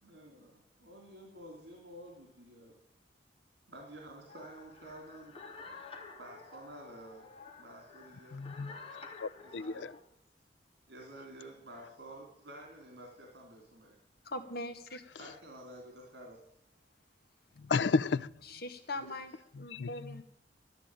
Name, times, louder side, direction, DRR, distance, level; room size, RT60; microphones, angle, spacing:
voice 1, 0.0-2.8 3.7-5.4 6.2-7.3 7.6-8.4 9.3-9.9 10.9-14.0 15.2-16.4 18.7-18.8 19.1-19.3, right 1 dB, 65° right, 1 dB, 3.3 m, -51 dB
sound 1, 4.3-10.0, left 4 dB, 35° left, 2.7 m, -51 dB
voice 2, 8.3-8.7 9.2-9.9 17.7-18.3 19.7-19.9, left 4 dB, 90° left, 16 dB, 0.5 m, -31 dB
voice 3, 14.2-15.0 18.4-20.2, left 2 dB, 60° left, 7 dB, 1.9 m, -41 dB
12.5 x 9.9 x 9.0 m, 0.78 s
head